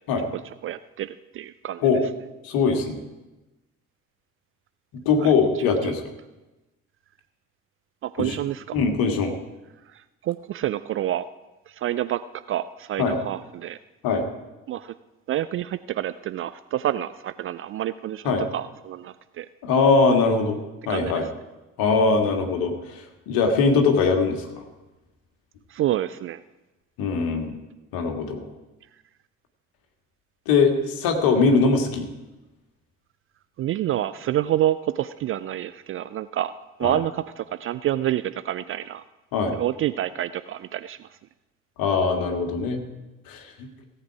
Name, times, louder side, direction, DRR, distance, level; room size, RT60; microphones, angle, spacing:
voice 1, 0.3-1.9 5.2-5.3 5.6-5.8 8.0-8.8 9.9-11.3 11.7-12.2 12.5-13.8 14.7-14.9 15.3-19.5 20.9-21.3 25.7-26.4 33.6-36.5 36.8-39.0 39.5-41.1, right 12 dB, 35° right, 14 dB, 0.4 m, -28 dB
voice 2, 2.4-3.0 5.1-6.0 8.2-8.4 8.7-9.3 13.0-13.2 14.0-14.2 18.3-18.4 19.6-20.6 20.9-21.2 21.8-24.6 27.0-27.6 27.9-28.5 30.5-32.1 36.8-37.0 39.3-39.5 41.8-42.8 43.3-43.7, left 4 dB, 60° left, 4 dB, 1.8 m, -21 dB
17.0 x 8.1 x 4.8 m, 1.1 s
figure-of-eight pair, 45°, 41 cm